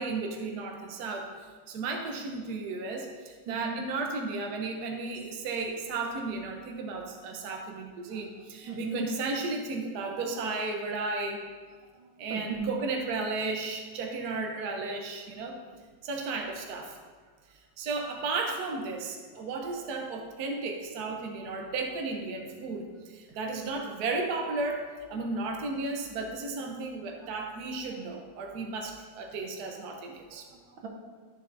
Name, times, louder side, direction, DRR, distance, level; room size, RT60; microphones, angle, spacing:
voice 1, 0.0-1.3 1.7-11.4 12.2-15.6 16.0-17.0 17.8-30.5, right 3 dB, 60° right, 2 dB, 1.3 m, -34 dB
voice 2, 3.5-3.8 8.1-8.2 8.7-9.0 11.9-12.7 27.2-27.3 30.3-30.9, right 5 dB, 85° right, 1 dB, 2.0 m, -38 dB
13.5 x 6.8 x 2.7 m, 1.5 s
omnidirectional pair, 2.1 m